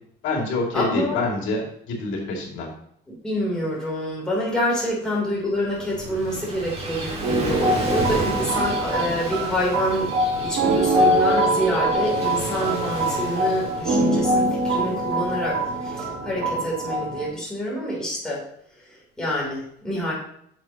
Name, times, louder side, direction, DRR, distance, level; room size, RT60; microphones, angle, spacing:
voice 1, 0.2-2.7 6.0-6.1, left 3 dB, 80° left, 0 dB, 2.3 m, -26 dB
voice 2, 0.7-1.2 3.1-10.1 10.4-18.4 19.2-20.1, equal, 5° left, -5 dB, 3.1 m, -27 dB
Gull seagull / Waves surf, 5.5-16.0, right 2 dB, 30° right, 2.0 m, -34 dB
sound 1, 7.2-17.3, right 1 dB, 90° right, 2.2 m, -23 dB
10.5 x 6.8 x 2.9 m, 0.68 s
cardioid pair, 175°, 20 cm